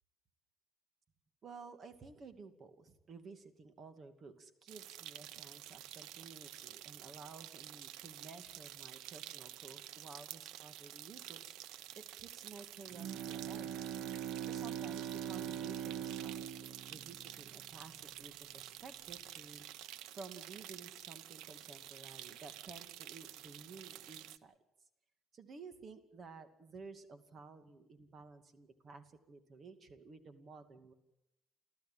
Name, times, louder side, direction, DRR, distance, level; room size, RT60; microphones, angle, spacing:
voice 1, 1.4-11.9 12.1-13.7 14.4-24.6 25.3-30.9, right 4 dB, 40° right, 9 dB, 2.5 m, -54 dB
sound 1, 4.7-24.4, right 13 dB, 85° right, 0.8 m, -50 dB
Bowed string instrument, 12.9-18.0, right 9 dB, 65° right, 1.4 m, -42 dB
30.0 x 14.0 x 7.6 m, 0.87 s
cardioid pair, 110°, 0 cm